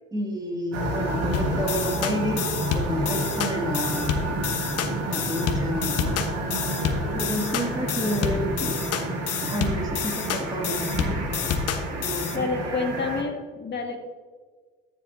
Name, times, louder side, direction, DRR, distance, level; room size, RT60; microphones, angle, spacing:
voice 1, 0.1-2.5 2.7-4.8 5.1-6.1 7.1-8.8 9.4-11.6 11.9-13.1, equal, 15° right, 1 dB, 2.3 m, -31 dB
sound 1, 0.7-13.2, right 1 dB, 60° right, 2.3 m, -30 dB
sound 2, 1.3-12.4, left 7 dB, 55° left, 1.2 m, -29 dB
voice 2, 12.3-14.0, left 3 dB, 35° left, 2 dB, 2.2 m, -28 dB
13.5 x 7.4 x 2.7 m, 1.5 s
supercardioid pair, 75°, 29 cm